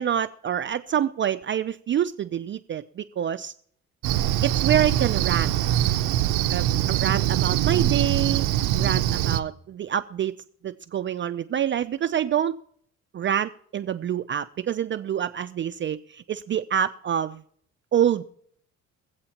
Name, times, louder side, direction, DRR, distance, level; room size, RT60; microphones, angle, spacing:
voice 1, 0.0-3.5 4.4-5.5 6.5-8.4 8.8-10.3 10.6-12.5 13.1-17.4 17.9-18.3, right 9 dB, 40° right, 10 dB, 0.4 m, -26 dB
Cricket, 4.0-9.4, right 12 dB, 90° right, 0.6 m, -23 dB
23.0 x 7.9 x 2.9 m, 0.67 s
cardioid pair, 90°, 30 cm